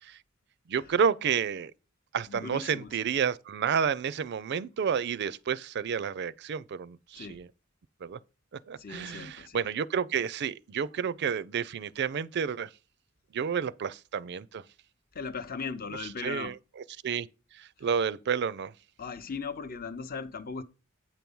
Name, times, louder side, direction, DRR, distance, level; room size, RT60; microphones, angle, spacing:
voice 1, 0.7-1.7 2.1-7.5 8.0-8.2 8.7-12.7 13.3-14.6 16.0-16.5 17.0-17.3 17.5-18.7, right 7 dB, 55° right, 0.4 m, -30 dB
voice 2, 2.3-3.0 7.1-7.4 8.8-9.7 15.1-16.5 19.0-20.6, left 5 dB, 45° left, 0.7 m, -38 dB
8.8 x 4.6 x 5.4 m
head